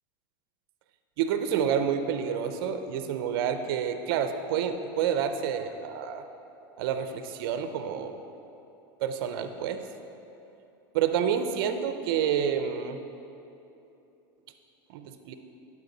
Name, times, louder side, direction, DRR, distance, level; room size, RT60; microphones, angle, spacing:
voice 1, 1.2-6.2 6.8-8.2 9.0-9.9 10.9-13.0 14.9-15.3, right 8 dB, 75° right, 8 dB, 0.6 m, -29 dB
11.0 x 4.4 x 5.4 m, 2.9 s
supercardioid pair, 140°, 12 cm